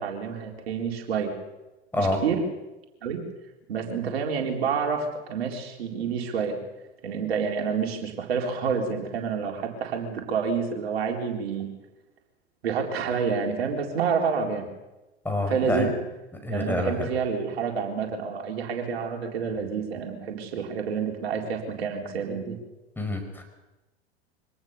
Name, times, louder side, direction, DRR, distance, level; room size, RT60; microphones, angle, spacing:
voice 1, 0.0-1.4 2.0-2.5 3.0-3.2 3.7-6.6 7.0-11.7 12.6-14.6 15.5-15.9 16.5-22.6, right 6 dB, 65° right, 2 dB, 4.2 m, -28 dB
voice 2, 15.2-15.9 16.4-17.1 23.0-23.4, left 1 dB, 5° left, 4 dB, 5.2 m, -27 dB
25.0 x 18.5 x 6.9 m, 1.0 s
figure-of-eight pair, 85°, 33 cm